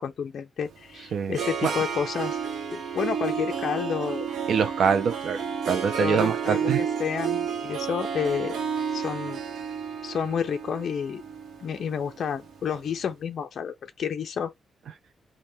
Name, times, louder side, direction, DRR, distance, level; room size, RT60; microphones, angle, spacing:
voice 1, 0.0-2.4 2.7-4.3 6.0-8.6 8.9-9.4 10.0-11.2 11.6-14.5, left 7 dB, 50° left, 0.3 m, -30 dB
Harp, 0.7-12.8, right 7 dB, 90° right, 0.8 m, -31 dB
voice 2, 4.5-5.4 5.7-6.8, right 7 dB, 60° right, 0.3 m, -24 dB
3.3 x 2.1 x 2.6 m
wide cardioid pair, 180°, 0 cm